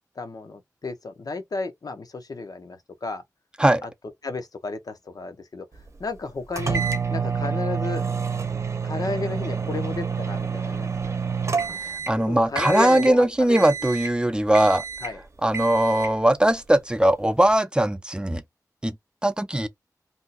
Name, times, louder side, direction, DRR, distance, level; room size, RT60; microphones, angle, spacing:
voice 1, 0.2-3.2 3.8-3.9 4.2-5.7 6.0-6.8 7.1-8.1 8.8-11.1 12.3-13.7 14.3-14.5 15.0-15.2, left 3 dB, 75° left, 0.7 m, -32 dB
sound 1, 6.6-12.2 12.6-13.1 13.6-14.2 14.5-15.2 15.5-16.2, right 6 dB, 50° right, 0.7 m, -28 dB
voice 2, 11.8-14.8 15.4-18.4 18.8-18.9 19.2-19.7, right 1 dB, 15° right, 0.5 m, -20 dB
2.7 x 2.2 x 4.0 m
wide cardioid pair, 70°, 6 cm